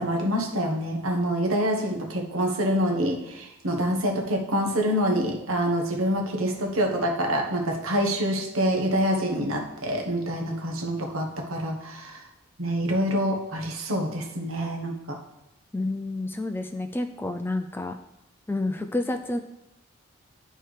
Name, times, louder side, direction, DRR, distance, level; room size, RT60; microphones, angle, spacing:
voice 1, 0.0-12.2 12.6-15.2, equal, 80° right, 2 dB, 1.2 m, -26 dB
voice 2, 15.7-18.0 18.5-19.4, left 2 dB, 10° left, 7 dB, 0.3 m, -29 dB
11.0 x 4.4 x 3.3 m, 0.94 s
head